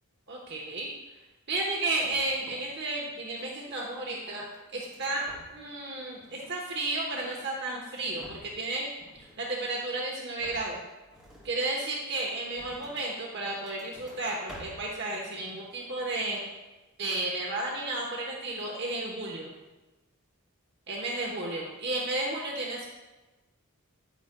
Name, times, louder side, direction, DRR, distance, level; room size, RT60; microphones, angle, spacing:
voice 1, 0.3-1.2 1.5-5.3 5.5-8.9 9.1-10.8 11.4-16.4 17.0-19.5 20.9-22.8, right 2 dB, 50° right, -1 dB, 1.0 m, -33 dB
sound 1, 1.8-2.8 3.1-3.8 4.3-5.8 6.1-7.5 8.0-8.7 9.0-9.9 10.4-13.1 13.5-14.9 15.3-16.0 16.3-16.6, equal, 5° right, 1.9 m, -52 dB
10.0 x 9.6 x 2.2 m, 1.1 s
head